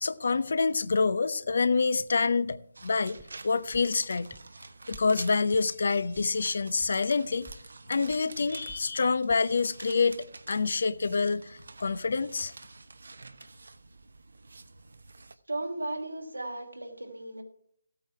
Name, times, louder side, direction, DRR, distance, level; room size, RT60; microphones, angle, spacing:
voice 1, 0.0-3.2 3.4-4.3 4.9-7.5 7.9-12.5, left 4 dB, 60° left, 0.8 m, -27 dB
sound 1, 2.7-15.3, right 3 dB, 70° right, 1.0 m, -48 dB
sound 2, 3.2-3.4 3.7-3.9 4.3-4.5 4.9-5.1 5.5-5.7 6.1-6.3 6.8-6.9 7.3-7.6 8.1-8.2 8.7-8.9 9.3-9.4, right 1 dB, 5° right, 0.7 m, -50 dB
voice 2, 15.5-17.4, right 2 dB, 90° right, 2.9 m, -35 dB
14.5 x 8.8 x 4.7 m
figure-of-eight pair, 155°, 0 cm